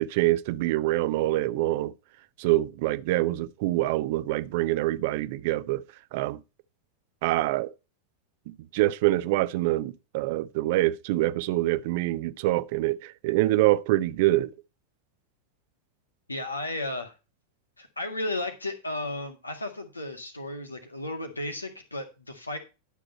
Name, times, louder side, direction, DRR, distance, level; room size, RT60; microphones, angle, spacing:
voice 1, 0.0-1.9 2.4-5.8 6.1-6.4 7.2-7.7 8.5-14.5, right 17 dB, 50° right, 0.6 m, -25 dB
voice 2, 16.3-17.2 17.8-22.6, left 2 dB, 80° left, 1.9 m, -34 dB
11.5 x 6.2 x 4.4 m
figure-of-eight pair, 90°, 0 cm